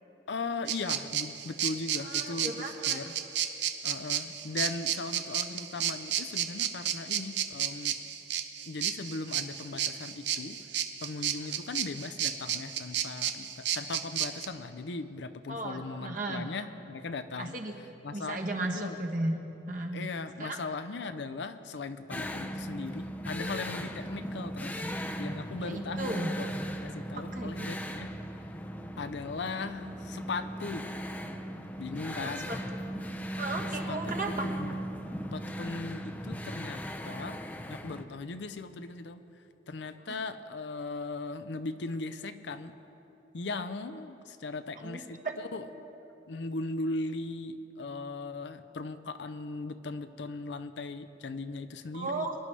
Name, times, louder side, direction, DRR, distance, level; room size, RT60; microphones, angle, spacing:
voice 1, 0.3-3.1 3.8-8.0 8.7-10.6 11.0-17.5 18.0-18.4 18.7-19.0 19.9-26.5 26.8-28.1 28.4-28.5 29.0-30.9 31.8-32.5 33.9-34.1 34.4-34.8 35.3-39.2 39.7-42.7 43.3-45.7 46.3-52.3, left 3 dB, 80° left, 10 dB, 0.6 m, -38 dB
sound 1, 0.7-14.5, right 10 dB, 80° right, 0.7 m, -32 dB
voice 2, 2.0-3.0 11.4-11.6 15.5-16.4 17.4-17.7 18.1-19.4 19.7-20.1 20.4-20.6 25.6-26.3 27.1-27.5 32.0-32.6 33.4-34.5 44.8-45.4 51.9-52.4, right 2 dB, 45° right, 2 dB, 1.2 m, -35 dB
sound 2, 22.1-38.0, equal, 10° left, 0.5 m, -38 dB
23.0 x 11.0 x 3.3 m, 3.0 s
head